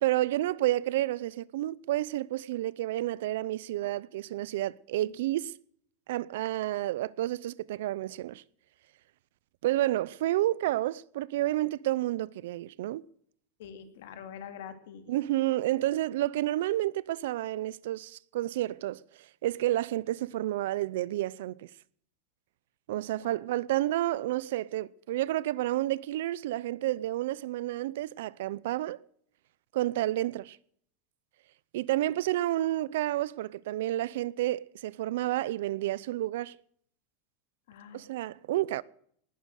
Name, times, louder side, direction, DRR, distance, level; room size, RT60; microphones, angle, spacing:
voice 1, 0.0-5.5 6.1-8.4 9.6-13.0 15.1-19.0 19.4-21.7 22.9-29.0 29.7-30.6 31.7-36.6 37.9-38.8, right 15 dB, 70° right, 0.6 m, -30 dB
voice 2, 13.6-15.1 23.2-23.4 37.7-38.1, left 8 dB, 65° left, 2.6 m, -45 dB
19.0 x 9.2 x 6.5 m
supercardioid pair, 175°, 0 cm